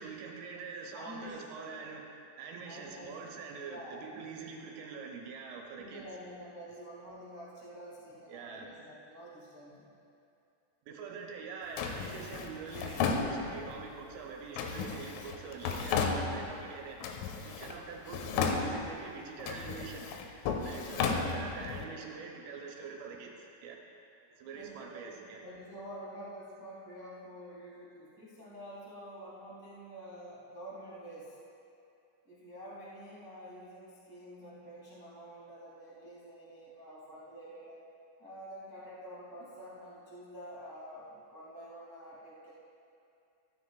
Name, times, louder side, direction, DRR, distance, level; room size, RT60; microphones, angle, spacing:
voice 1, 0.0-2.0 2.4-6.0 8.3-8.7 10.9-17.1 17.4-20.1 20.6-23.3 23.6-23.8 24.4-25.4, right 5 dB, 80° right, 0 dB, 3.6 m, -44 dB
voice 2, 0.9-1.7 2.6-3.1 3.6-4.0 5.8-9.9 24.5-31.4 32.2-37.8 38.2-42.5, equal, 15° right, -8 dB, 0.7 m, -48 dB
Drawer open or close, 11.8-13.8 14.6-16.7 17.0-17.8 18.1-19.0 19.4-21.8, left 5 dB, 90° left, 3.3 m, -34 dB
15.5 x 13.5 x 2.5 m, 2.6 s
omnidirectional pair, 5.6 m